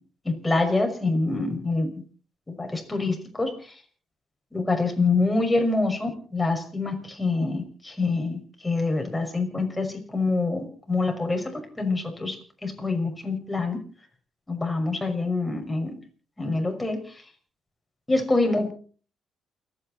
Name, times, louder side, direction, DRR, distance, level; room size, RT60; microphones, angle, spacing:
voice 1, 0.2-1.9 2.6-3.5 4.5-8.4 8.6-12.4 12.6-13.8 14.5-15.9 16.4-17.0 18.1-18.7, left 3 dB, 15° left, 3 dB, 5.9 m, -25 dB
29.0 x 9.9 x 4.3 m, 0.42 s
cardioid pair, 90°, 0 cm